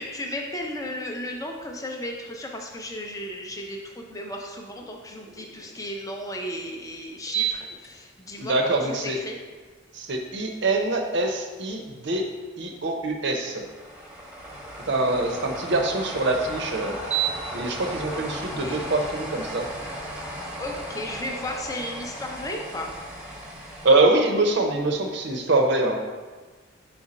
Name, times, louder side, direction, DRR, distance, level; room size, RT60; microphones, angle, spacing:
voice 1, 0.0-9.4 18.1-18.2 18.5-19.0 20.1-20.3 20.6-23.0, left 1 dB, 15° left, 2 dB, 0.6 m, -35 dB
sound 1, 7.3-7.9 8.4-8.5 13.6-23.9, right 4 dB, 5° right, 0.9 m, -34 dB
voice 2, 8.4-9.2 9.9-12.3 12.6-13.7 14.9-17.0 17.5-19.7 23.8-26.0, right 2 dB, 55° right, 3 dB, 0.6 m, -24 dB
4.5 x 4.2 x 5.0 m, 1.4 s
head